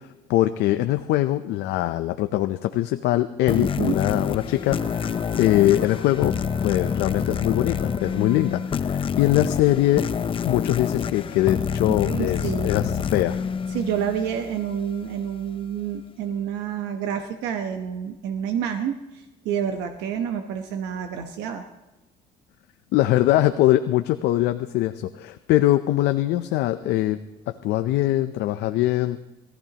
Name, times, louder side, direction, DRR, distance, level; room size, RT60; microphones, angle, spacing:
voice 1, 0.3-6.3 6.6-10.1 10.4-13.4 22.9-27.2 27.5-29.2, left 15 dB, 85° left, 9 dB, 0.6 m, -22 dB
sound 1, 3.5-14.6, left 7 dB, 30° left, 0.6 m, -27 dB
voice 2, 3.6-4.0 12.0-12.7 13.7-21.7, right 8 dB, 90° right, 6 dB, 1.0 m, -29 dB
Wind instrument woodwind instrument, 4.7-8.7, right 2 dB, 25° right, 4.5 m, -46 dB
21.0 x 14.5 x 2.9 m, 1.0 s
cardioid pair, 110°, 17 cm